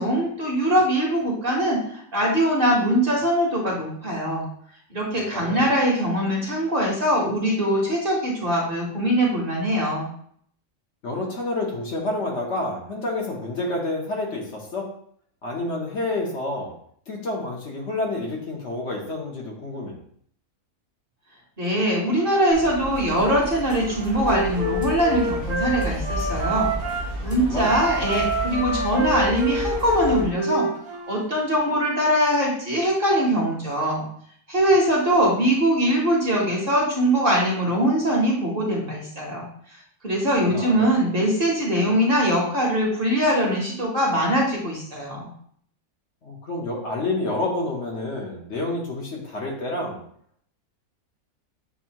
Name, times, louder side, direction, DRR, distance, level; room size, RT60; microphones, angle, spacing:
voice 1, 0.0-4.4 4.9-10.1 21.6-26.7 27.0-30.7 31.1-34.0 34.5-39.4 40.0-45.3, equal, 40° right, -2 dB, 1.2 m, -22 dB
voice 2, 5.3-5.7 11.0-14.9 15.4-16.7 17.1-20.0 27.2-27.8 40.5-40.9 46.2-50.0, left 2 dB, 55° left, -1 dB, 1.1 m, -29 dB
sound 1, 22.5-30.3, equal, 35° left, 0.3 m, -32 dB
Wind instrument woodwind instrument, 23.7-27.1 27.6-31.2, right 1 dB, 70° right, 1.2 m, -28 dB
7.0 x 2.7 x 2.8 m, 0.62 s
omnidirectional pair, 1.5 m